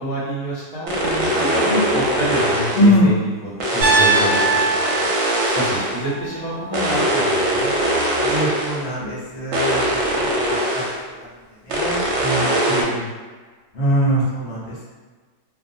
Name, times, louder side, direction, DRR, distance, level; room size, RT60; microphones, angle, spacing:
voice 1, 0.0-5.1 5.5-7.7 12.7-13.1, equal, 65° left, -8 dB, 1.2 m, -27 dB
sound 1, 0.9-3.0 3.6-6.1 6.7-8.8 9.5-11.0 11.7-12.8, right 1 dB, 65° right, 0.9 m, -21 dB
voice 2, 2.7-3.1 8.2-10.3 10.7-10.8 11.7-12.6 13.7-14.9, equal, 50° left, -8 dB, 0.9 m, -21 dB
Piano, 3.8-7.9, right 4 dB, 20° right, 1.0 m, -23 dB
2.5 x 2.4 x 2.6 m, 1.4 s
omnidirectional pair, 1.6 m